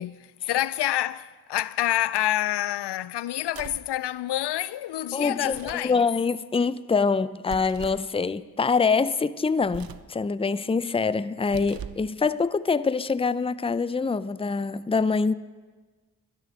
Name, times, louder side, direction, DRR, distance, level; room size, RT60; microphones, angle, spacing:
voice 1, 0.0-6.1, left 13 dB, 75° left, 0.5 m, -28 dB
sound 1, 3.5-3.9 5.4-5.9 7.5-8.1 9.6-10.1 11.4-12.1, right 8 dB, 60° right, 0.8 m, -41 dB
voice 2, 5.1-5.6 5.8-15.3, left 4 dB, 15° left, 0.5 m, -25 dB
12.0 x 12.0 x 6.0 m
cardioid pair, 40°, 41 cm